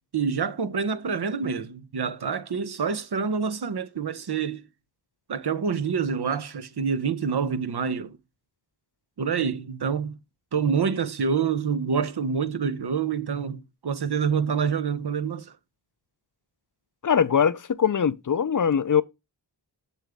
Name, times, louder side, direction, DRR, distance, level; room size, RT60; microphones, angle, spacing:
voice 1, 0.1-4.6 5.3-8.2 9.2-10.2 10.5-15.5, right 6 dB, 60° right, 0.9 m, -27 dB
voice 2, 17.0-19.0, left 7 dB, 45° left, 0.6 m, -22 dB
7.3 x 6.9 x 3.5 m
cardioid pair, 45°, 44 cm